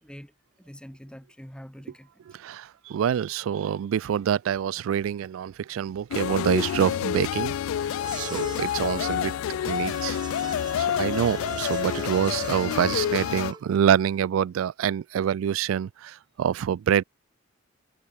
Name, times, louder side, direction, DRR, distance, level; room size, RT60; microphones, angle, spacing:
voice 1, 0.0-2.2, equal, 5° left, 2.5 m, -45 dB
voice 2, 2.3-7.6 7.9-9.3 9.7-10.2 10.5-17.0, right 8 dB, 75° right, 0.3 m, -26 dB
sound 1, 4.3-11.4, equal, 40° right, 5.1 m, -61 dB
sound 2, 6.1-13.5, left 9 dB, 85° left, 0.3 m, -28 dB
sound 3, 7.9-13.8, right 4 dB, 20° right, 0.6 m, -40 dB
head